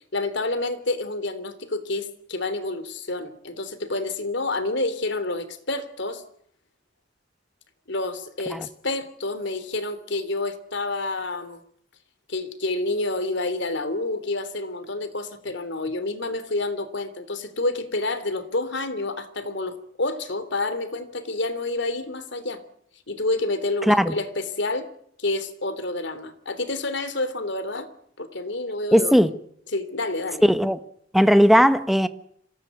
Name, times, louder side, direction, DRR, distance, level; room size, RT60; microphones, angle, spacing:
voice 1, 0.1-6.2 7.9-11.6 12.3-22.6 23.1-24.9 25.2-27.9 28.2-29.3 29.7-30.4, left 2 dB, 65° left, 3.2 m, -28 dB
voice 2, 28.9-29.3 30.4-30.8 31.1-32.1, equal, ahead, 1.3 m, -17 dB
26.0 x 17.5 x 9.4 m
head